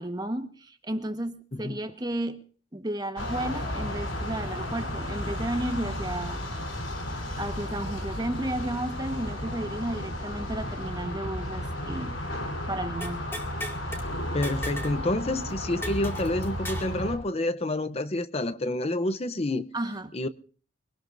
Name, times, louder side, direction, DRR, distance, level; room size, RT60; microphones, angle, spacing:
voice 1, 0.0-2.4 2.7-6.4 7.4-12.2 12.7-13.3 19.7-20.1, right 1 dB, 20° right, 1.2 m, -33 dB
sound 1, 3.2-17.2, left 1 dB, 85° left, 3.7 m, -33 dB
sound 2, 13.0-14.0 14.4-15.0 15.3-15.4 15.8-17.0, equal, 10° left, 2.1 m, -37 dB
voice 2, 14.3-19.7 20.1-20.3, left 1 dB, 30° left, 0.7 m, -28 dB
24.0 x 18.5 x 2.6 m
head